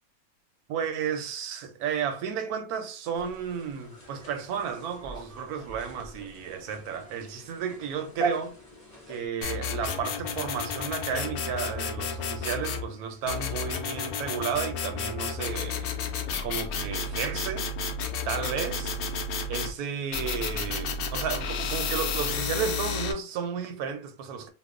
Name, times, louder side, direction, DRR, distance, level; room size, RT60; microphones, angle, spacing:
voice 1, 0.7-8.6 9.1-15.9 16.4-17.7 18.3-19.0 19.5-24.5, right 7 dB, 90° right, 1.1 m, -33 dB
sound 1, 3.1-9.3, right 3 dB, 15° left, 1.0 m, -39 dB
sound 2, 9.4-12.9 13.3-19.7 20.1-23.1, left 5 dB, 80° left, 1.1 m, -32 dB
2.9 x 2.0 x 3.6 m
omnidirectional pair, 1.6 m